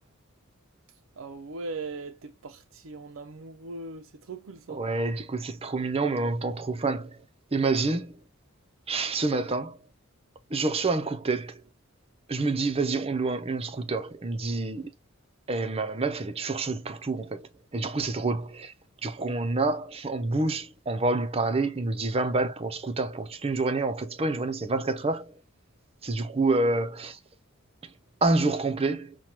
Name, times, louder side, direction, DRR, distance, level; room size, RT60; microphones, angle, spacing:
voice 1, 1.2-4.8, right 3 dB, 70° right, 0.5 m, -39 dB
voice 2, 4.7-7.2 7.5-8.2 8.9-9.8 10.5-11.6 12.3-14.9 15.5-18.7 19.0-25.4 26.0-27.2 28.2-29.2, right 3 dB, 30° right, 0.6 m, -28 dB
5.7 x 2.3 x 3.0 m
head